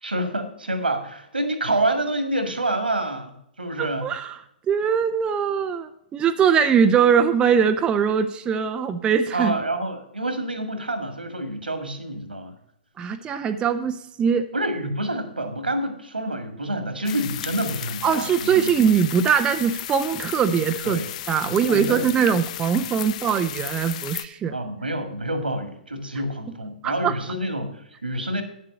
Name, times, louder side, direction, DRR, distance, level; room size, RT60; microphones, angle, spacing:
voice 1, 0.0-4.1 9.3-12.5 14.5-18.8 20.8-21.1 21.5-22.1 24.5-28.4, right 1 dB, 85° right, 8 dB, 2.0 m, -28 dB
voice 2, 3.8-4.4 4.7-9.5 13.0-14.5 18.0-21.0 21.3-24.5 26.8-27.2, right 7 dB, 20° right, 7 dB, 0.6 m, -21 dB
sound 1, 17.1-24.3, left 12 dB, 45° left, 0.5 m, -34 dB
10.0 x 7.6 x 5.3 m, 0.77 s
figure-of-eight pair, 115°, 5 cm